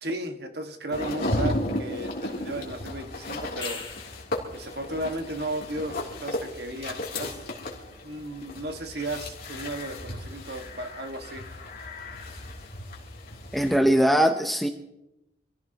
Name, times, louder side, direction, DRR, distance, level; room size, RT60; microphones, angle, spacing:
voice 1, 0.0-3.8 4.5-7.4 8.0-11.4, right 1 dB, 55° right, 5 dB, 1.7 m, -34 dB
sound 1, 0.9-13.8, left 1 dB, 50° left, 3.1 m, -34 dB
sound 2, 3.4-4.4 9.1-9.2, left 5 dB, 25° left, 2.4 m, -38 dB
voice 2, 13.5-14.7, equal, ahead, 5 dB, 0.7 m, -21 dB
26.5 x 16.0 x 3.0 m, 0.87 s
head